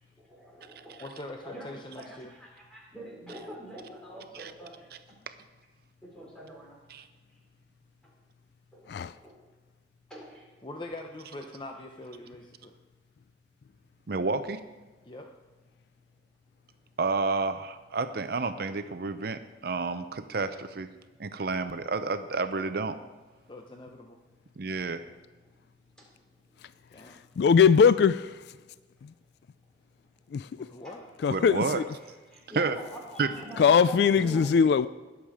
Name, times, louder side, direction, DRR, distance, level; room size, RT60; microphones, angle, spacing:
voice 1, 0.0-1.0 1.4-5.2 6.0-6.8 7.3-7.4 8.0-8.1 8.7-9.4 10.1-10.5 25.4-26.7 27.0-27.4 30.8-31.0 31.6-31.8 32.3-34.9, equal, 5° left, 4.0 m, -46 dB
voice 2, 1.0-2.3 10.6-12.7 15.0-15.3 23.5-24.2 26.9-27.2 30.5-31.0, left 1 dB, 25° left, 0.7 m, -43 dB
voice 3, 14.1-14.6 17.0-20.9 21.2-23.0 24.6-25.1 31.3-31.8 32.5-32.8 33.2-33.3, right 4 dB, 60° right, 0.6 m, -30 dB
voice 4, 27.4-28.4 30.3-30.5 31.2-31.8 33.6-34.9, left 6 dB, 65° left, 0.3 m, -21 dB
20.5 x 7.2 x 4.9 m
head